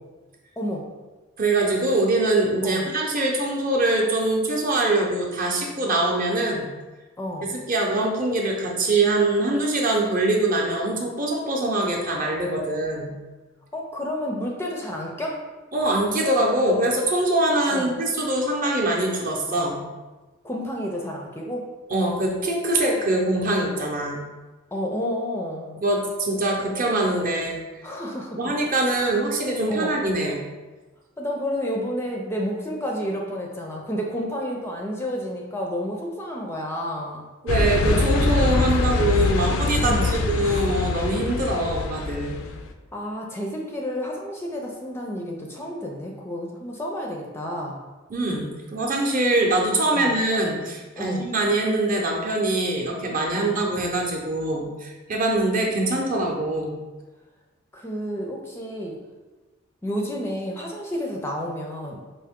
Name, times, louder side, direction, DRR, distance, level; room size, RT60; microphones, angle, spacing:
voice 1, 0.6-0.9 2.6-2.9 7.2-7.5 13.7-15.4 17.7-18.0 20.4-21.7 24.7-25.8 27.8-28.5 29.7-30.0 31.2-37.2 39.8-40.2 42.9-47.8 49.9-50.2 51.0-51.3 53.3-53.6 57.7-59.0 59.8-62.0, equal, 10° left, -1 dB, 0.4 m, -30 dB
voice 2, 1.4-6.7 7.7-13.1 15.7-19.8 21.9-24.2 25.8-27.6 28.4-30.4 37.4-42.4 48.1-56.8, right 2 dB, 40° right, -1 dB, 0.7 m, -23 dB
sound 1, 37.5-42.6, left 3 dB, 80° left, 0.4 m, -24 dB
4.7 x 2.6 x 3.6 m, 1.2 s
head